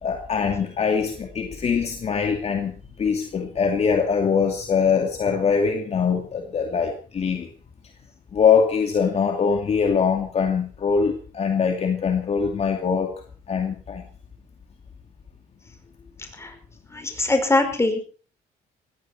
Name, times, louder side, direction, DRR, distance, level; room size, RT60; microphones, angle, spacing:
voice 1, 0.0-7.5 8.3-14.0, left 6 dB, 40° left, 4 dB, 2.5 m, -23 dB
voice 2, 16.9-18.0, left 2 dB, 15° left, 5 dB, 5.2 m, -22 dB
19.5 x 15.5 x 4.4 m, 0.40 s
cardioid pair, 110°, 17 cm